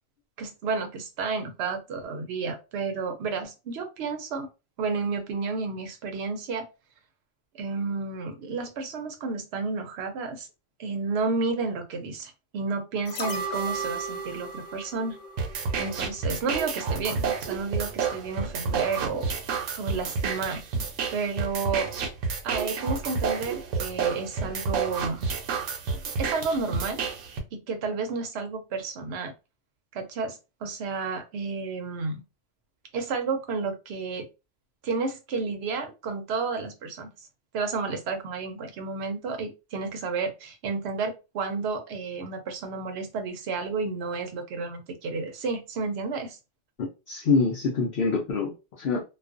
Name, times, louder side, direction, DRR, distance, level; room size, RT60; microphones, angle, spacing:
voice 1, 0.4-4.5 4.8-6.7 7.5-10.5 10.8-15.2 15.8-19.3 19.8-20.6 21.1-21.9 22.4-25.3 26.2-27.0 27.5-29.3 29.9-32.2 32.9-34.3 34.8-37.1 37.5-46.4, right 4 dB, 65° right, 0.8 m, -31 dB
sound 1, 13.1-16.2 16.5-16.6, right 3 dB, 80° left, 1.0 m, -35 dB
sound 2, 15.4-27.4, right 5 dB, 85° right, 1.0 m, -30 dB
voice 2, 46.8-48.5 48.8-49.0, left 4 dB, 55° left, 0.7 m, -25 dB
2.4 x 2.2 x 2.4 m
omnidirectional pair, 1.3 m